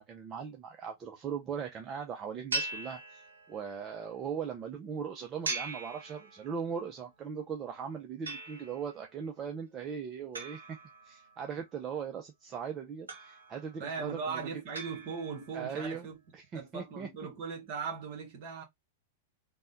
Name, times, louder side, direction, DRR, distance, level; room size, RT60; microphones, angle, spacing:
voice 1, 0.0-10.8 11.0-14.4 15.5-16.1 16.3-17.1, right 7 dB, 30° right, 0.5 m, -39 dB
sound 1, 2.5-3.7 5.4-6.7 8.3-9.0 10.3-11.5 13.1-13.8 14.7-15.6, right 3 dB, 80° right, 0.9 m, -40 dB
voice 2, 13.8-16.2 16.5-18.6, right 5 dB, 50° right, 1.4 m, -39 dB
3.3 x 2.2 x 2.6 m
hypercardioid pair, 100°, 0 cm